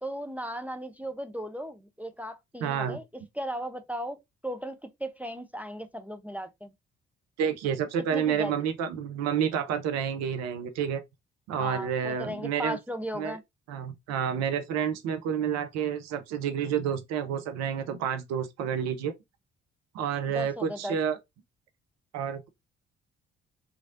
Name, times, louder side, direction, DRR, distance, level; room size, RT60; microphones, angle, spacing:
voice 1, 0.0-4.2 4.4-6.7 8.1-8.5 11.6-13.4 20.3-21.0, equal, 5° right, 0.3 m, -36 dB
voice 2, 2.6-3.0 7.4-11.0 11.5-12.8 13.2-13.4 13.7-19.1 19.9-21.2 22.1-22.5, right 8 dB, 60° right, 0.5 m, -29 dB
3.0 x 2.4 x 2.5 m
figure-of-eight pair, 45°, 30 cm